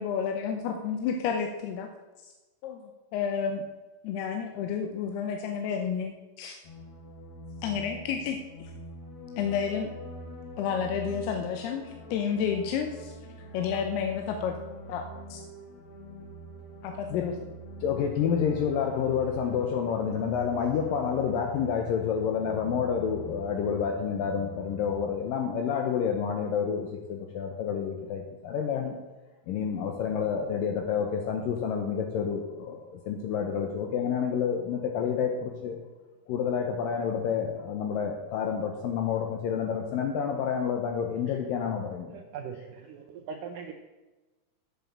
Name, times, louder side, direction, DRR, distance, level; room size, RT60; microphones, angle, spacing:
voice 1, 0.0-1.9 2.6-3.6 4.0-6.6 7.6-8.4 9.4-9.9 10.6-13.1 13.5-14.5 14.9-15.4 16.8-17.4, left 7 dB, 90° left, 4 dB, 2.8 m, -31 dB
sound 1, 6.6-25.0, right 1 dB, 45° left, 3.4 m, -44 dB
voice 2, 17.8-29.0 29.5-35.8 36.3-42.1, left 7 dB, 75° left, 3 dB, 2.3 m, -29 dB
voice 3, 42.1-43.7, right 6 dB, 80° right, 3 dB, 1.9 m, -41 dB
8.2 x 7.5 x 7.2 m, 1.2 s
omnidirectional pair, 4.5 m